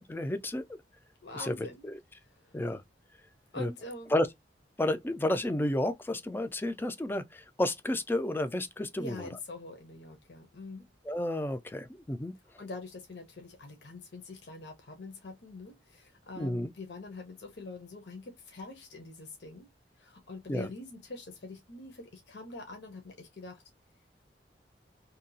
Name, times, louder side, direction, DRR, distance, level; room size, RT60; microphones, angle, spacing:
voice 1, 0.1-0.6 1.4-1.6 1.8-1.9 2.5-2.8 3.6-3.7 4.1-4.3 4.8-9.2 11.0-12.3 16.4-16.7 20.5-20.7, left 1 dB, 10° left, 0.3 m, -31 dB
voice 2, 1.2-1.9 2.4-2.6 3.5-4.2 9.0-10.9 12.6-19.7 20.0-23.6, left 3 dB, 70° left, 0.8 m, -44 dB
2.8 x 2.2 x 2.6 m
head